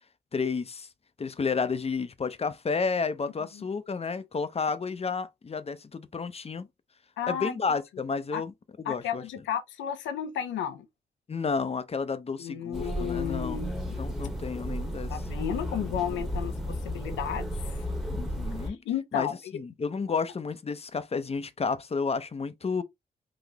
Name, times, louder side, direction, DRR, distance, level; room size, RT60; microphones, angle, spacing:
voice 1, 0.3-0.9 1.2-6.7 7.3-8.5 8.8-9.2 11.3-13.6 14.0-15.2 18.0-18.8 19.1-22.8, left 5 dB, 35° left, 0.6 m, -31 dB
voice 2, 7.2-7.6 8.3-8.4 8.9-10.9 12.4-14.0 15.1-17.8 18.6-19.5, left 9 dB, 75° left, 0.6 m, -33 dB
sound 1, 12.7-18.7, equal, ahead, 1.1 m, -33 dB
4.0 x 2.5 x 2.9 m
hypercardioid pair, 40°, 19 cm